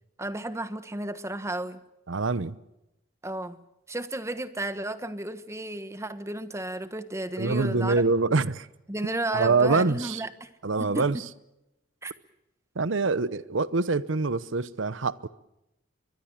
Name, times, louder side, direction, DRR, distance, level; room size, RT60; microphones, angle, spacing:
voice 1, 0.2-1.8 3.2-3.6 3.9-7.9 8.9-10.5 10.8-11.1 12.0-12.1, right 1 dB, 15° right, 1.3 m, -33 dB
voice 2, 2.1-2.6 7.4-8.7 9.3-10.2 10.6-11.2 12.8-15.3, right 3 dB, 80° right, 0.9 m, -25 dB
23.0 x 22.5 x 7.4 m
head